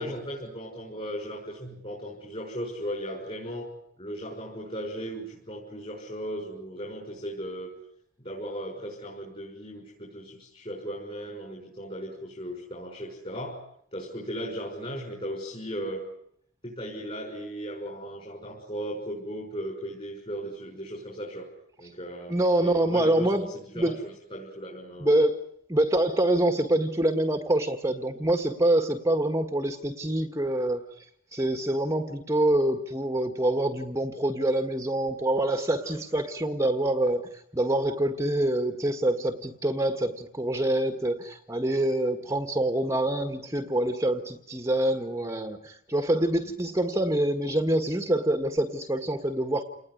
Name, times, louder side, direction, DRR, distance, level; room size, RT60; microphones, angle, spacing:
voice 1, 0.0-3.7 4.0-7.7 8.2-13.6 13.9-16.0 16.6-21.5 21.8-25.1 35.8-36.0 46.4-46.5, equal, 30° left, 0 dB, 6.0 m, -37 dB
voice 2, 22.3-24.0 25.0-25.3 25.7-49.6, right 1 dB, 15° right, 7 dB, 1.6 m, -26 dB
29.0 x 20.0 x 9.8 m, 0.72 s
head